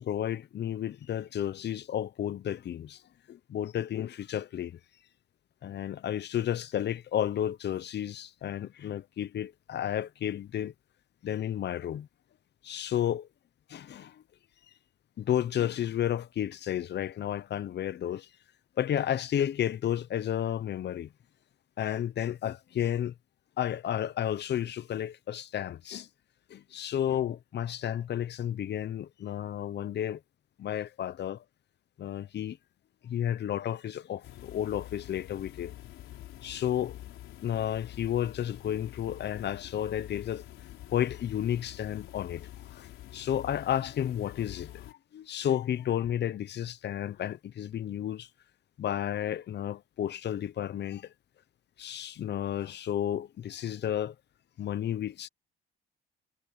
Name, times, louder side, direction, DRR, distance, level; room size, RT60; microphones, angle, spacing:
voice 1, 0.0-3.0 3.3-4.8 5.6-10.7 11.2-12.1 12.6-13.3 13.7-14.2 15.2-18.3 18.8-21.1 21.8-23.1 23.6-26.1 26.5-30.2 30.6-31.4 32.0-32.6 33.0-35.7 36.4-37.0 37.4-40.4 40.9-48.3 48.8-51.1 51.8-54.1 54.6-55.3, left 10 dB, 60° left, 0.9 m, -32 dB
sound 1, 34.2-44.9, left 14 dB, 90° left, 4.2 m, -47 dB
cardioid pair, 90°, 20 cm